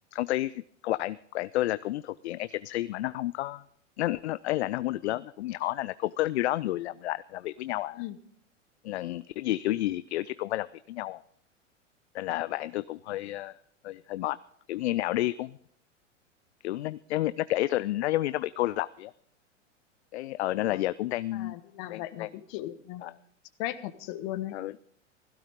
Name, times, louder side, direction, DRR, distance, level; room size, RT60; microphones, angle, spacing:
voice 1, 0.1-3.6 4.0-8.0 8.8-11.2 12.1-13.6 13.8-14.4 14.7-15.6 16.6-19.1 20.1-21.6 21.9-22.3 23.0-23.1 24.5-24.8, left 15 dB, 60° left, 17 dB, 0.5 m, -30 dB
voice 2, 21.3-23.0 23.6-24.6, left 14 dB, 45° left, 13 dB, 1.4 m, -37 dB
16.5 x 16.0 x 3.7 m, 0.66 s
figure-of-eight pair, 100°, 38 cm